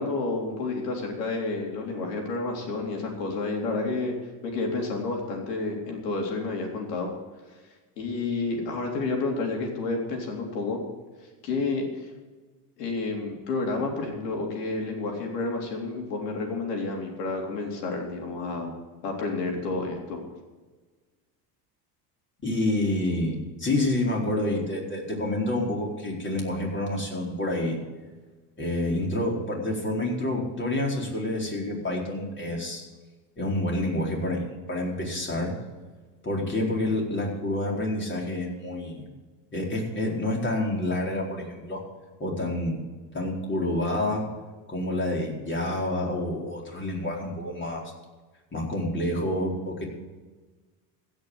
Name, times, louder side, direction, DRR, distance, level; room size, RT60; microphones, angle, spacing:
voice 1, 0.0-4.1 4.4-7.1 8.0-10.8 11.4-12.1 12.8-18.7 19.0-20.2, left 3 dB, 90° left, 1 dB, 3.7 m, -30 dB
voice 2, 22.4-27.8 28.6-32.8 33.4-35.5 36.2-39.1 39.5-41.8 42.2-42.8 43.1-44.3 44.7-47.9 48.5-49.8, left 1 dB, 25° left, -1 dB, 4.5 m, -28 dB
16.0 x 6.5 x 8.0 m, 1.3 s
supercardioid pair, 100°, 47 cm